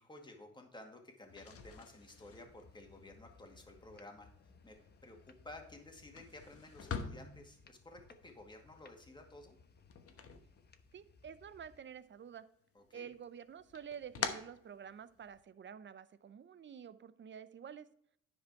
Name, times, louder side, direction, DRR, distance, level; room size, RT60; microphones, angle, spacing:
voice 1, 0.0-4.3 4.6-4.8 5.0-9.6 12.7-13.1, left 2 dB, 15° left, 3 dB, 2.0 m, -54 dB
sound 1, 1.2-11.2 11.6-12.4 12.8-15.4, left 6 dB, 50° left, 1.1 m, -47 dB
sound 2, 1.3-11.8, left 4 dB, 35° left, 0.8 m, -64 dB
voice 2, 10.9-12.4 12.9-17.9, right 8 dB, 40° right, 14 dB, 0.6 m, -49 dB
9.9 x 5.2 x 4.7 m, 0.69 s
cardioid pair, 90°, 30 cm